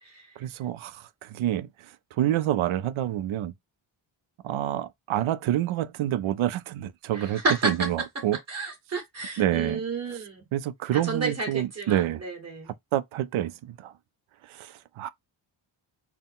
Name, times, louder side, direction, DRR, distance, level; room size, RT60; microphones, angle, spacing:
voice 1, 0.4-3.5 4.4-8.4 9.4-9.8 10.1-10.2 10.5-12.2 12.9-13.9 14.4-15.1, right 12 dB, 85° right, 0.6 m, -28 dB
voice 2, 7.1-7.9 8.5-10.5 10.9-12.7, right 3 dB, 30° right, 2.1 m, -31 dB
4.3 x 2.1 x 3.6 m
wide cardioid pair, 150°, 48 cm